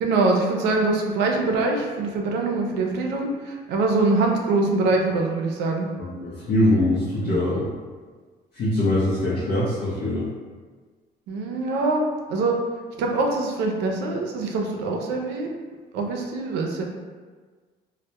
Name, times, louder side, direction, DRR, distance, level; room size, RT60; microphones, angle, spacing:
voice 1, 0.0-5.9 7.2-7.3 11.3-12.0 12.3-12.6 13.0-15.5 15.9-16.8, right 3 dB, 85° right, 1 dB, 0.4 m, -23 dB
voice 2, 6.2-7.7 8.5-10.3, left 1 dB, 60° left, -7 dB, 0.6 m, -22 dB
2.2 x 2.1 x 2.8 m, 1.4 s
cardioid pair, 110°, 17 cm